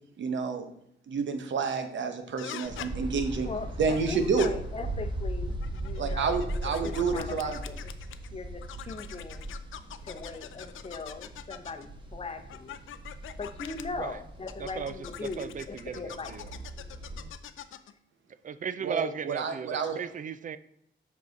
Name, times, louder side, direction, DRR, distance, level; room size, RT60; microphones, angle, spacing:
voice 1, 0.2-0.7 1.1-3.5 3.8-4.5 6.0-7.6 18.8-20.0, right 5 dB, 70° right, 7 dB, 0.9 m, -29 dB
sound 1, 2.4-2.9 3.9-4.5 5.5-8.3 8.6-11.9 12.5-13.8 14.5-17.9, left 11 dB, 90° left, 0.5 m, -43 dB
sound 2, 2.6-17.3, right 1 dB, 25° right, 1.1 m, -39 dB
voice 2, 3.4-7.9 8.3-9.5 10.0-12.8 13.2-16.6, left 3 dB, 30° left, 7 dB, 0.7 m, -40 dB
voice 3, 14.6-14.9 15.2-16.5 18.4-20.6, right 7 dB, 40° right, 14 dB, 0.4 m, -36 dB
7.3 x 4.8 x 4.0 m, 0.71 s
cardioid pair, 110°, 20 cm